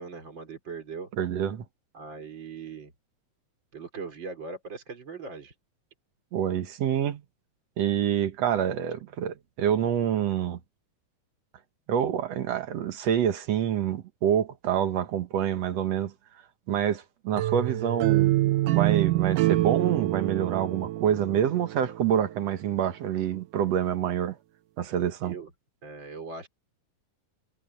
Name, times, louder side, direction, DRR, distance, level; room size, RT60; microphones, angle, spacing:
voice 1, 0.0-1.1 1.9-2.9 3.7-5.5 25.2-25.5 25.8-26.5, right 4 dB, 30° right, 4.3 m, -40 dB
voice 2, 1.2-1.7 6.3-7.2 7.8-10.6 11.9-16.1 16.7-24.4 24.8-25.4, right 9 dB, 60° right, 2.0 m, -27 dB
sound 1, 17.4-22.3, right 16 dB, 75° right, 2.1 m, -26 dB
omnidirectional pair, 4.1 m